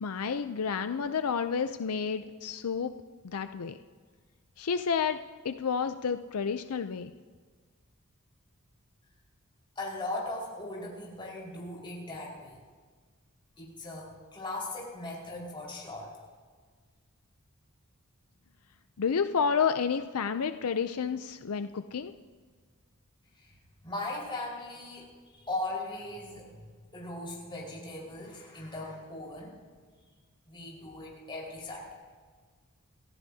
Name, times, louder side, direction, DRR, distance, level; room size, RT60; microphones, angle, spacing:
voice 1, 0.0-2.9 3.2-3.8 4.6-5.2 5.4-7.1 19.0-22.1, left 6 dB, 80° left, 9 dB, 0.5 m, -30 dB
voice 2, 9.7-12.6 13.6-16.1 23.4-23.5 23.8-26.6 26.9-29.5 30.5-31.9, left 2 dB, 25° left, -4 dB, 4.8 m, -39 dB
27.5 x 15.0 x 2.8 m, 1.5 s
head